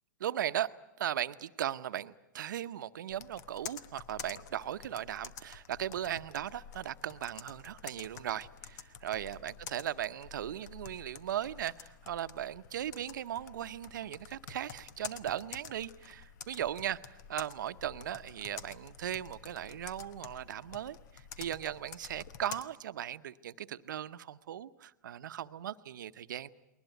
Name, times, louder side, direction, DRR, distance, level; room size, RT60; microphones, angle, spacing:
voice 1, 0.2-0.7 1.0-26.5, right 11 dB, 75° right, 0.8 m, -38 dB
Computer keyboard, 3.1-22.6, left 8 dB, 60° left, 1.2 m, -49 dB
21.0 x 20.0 x 9.2 m
hypercardioid pair, 130°, 11 cm